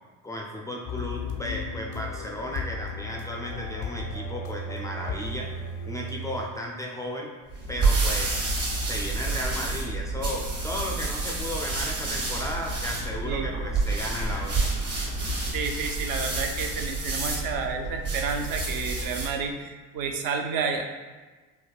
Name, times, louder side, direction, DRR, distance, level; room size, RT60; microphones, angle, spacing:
voice 1, 0.2-5.5 5.9-7.3 7.7-8.4 8.8-14.7, equal, 10° left, -1 dB, 0.3 m, -34 dB
sound 1, 0.9-6.9, left 2 dB, 70° left, 0.5 m, -35 dB
sound 2, 7.5-19.4, right 3 dB, 40° right, 1.1 m, -29 dB
Conversation / Chatter / Fixed-wing aircraft airplane, 7.6-15.5, right 1 dB, 75° right, 0.9 m, -46 dB
voice 2, 15.5-20.8, right 5 dB, 60° right, 4 dB, 0.5 m, -30 dB
3.5 x 2.2 x 2.3 m, 1.3 s
hypercardioid pair, 65°, 41 cm